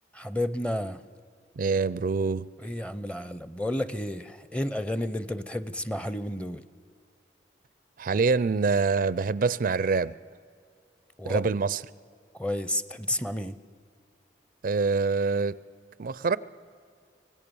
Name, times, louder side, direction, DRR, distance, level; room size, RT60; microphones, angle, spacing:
voice 1, 0.1-1.0 2.6-6.6 11.2-11.6 12.3-13.6, left 1 dB, 5° left, 0.6 m, -31 dB
voice 2, 1.6-2.5 8.0-10.1 11.2-11.8 14.6-15.6 16.0-16.4, right 4 dB, 50° right, 0.4 m, -25 dB
25.0 x 18.0 x 7.0 m
head